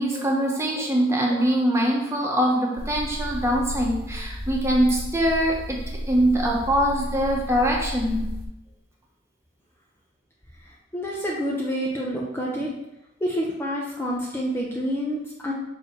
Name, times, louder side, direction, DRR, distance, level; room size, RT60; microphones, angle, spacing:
voice 1, 0.0-8.3 12.6-12.7, equal, 15° right, -1 dB, 1.2 m, -23 dB
sound 1, 2.8-8.5, equal, 55° right, 1.3 m, -33 dB
voice 2, 10.6-12.7 13.2-15.5, equal, 15° left, -3 dB, 0.8 m, -28 dB
6.2 x 4.8 x 4.6 m, 0.89 s
head